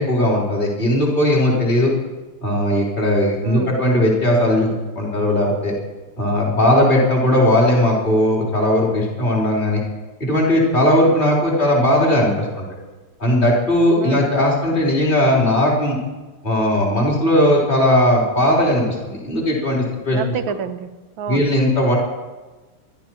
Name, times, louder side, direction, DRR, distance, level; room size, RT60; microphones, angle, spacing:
voice 1, 0.0-1.9 2.4-5.7 6.2-9.8 10.2-12.7 13.2-16.0 16.4-20.3 21.3-22.0, left 1 dB, 20° left, -4 dB, 3.9 m, -18 dB
voice 2, 3.4-3.8 14.0-14.3 20.1-20.9 21.2-21.5, right 8 dB, 70° right, 9 dB, 1.6 m, -28 dB
23.5 x 12.5 x 4.6 m, 1.2 s
omnidirectional pair, 2.4 m